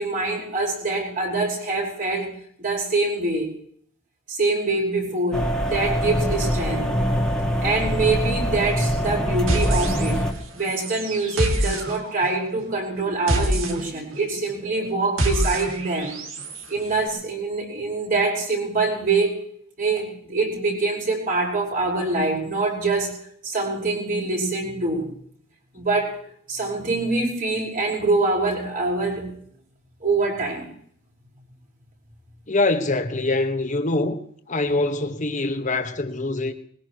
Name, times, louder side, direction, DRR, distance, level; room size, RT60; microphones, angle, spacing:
voice 1, 0.0-2.3 2.6-3.5 4.3-6.9 7.6-10.2 10.5-16.2 16.7-19.4 19.8-23.1 23.4-25.1 25.7-26.2 26.5-29.3 30.0-30.7, right 3 dB, 40° right, 5.3 m, -24 dB
sound 1, 5.3-10.3, equal, 5° left, 2.0 m, -24 dB
sound 2, 9.5-10.4 10.6-16.7, right 1 dB, 70° right, 2.6 m, -27 dB
voice 2, 32.5-34.2 34.5-36.5, left 2 dB, 35° left, 1.5 m, -24 dB
21.0 x 20.5 x 3.1 m
head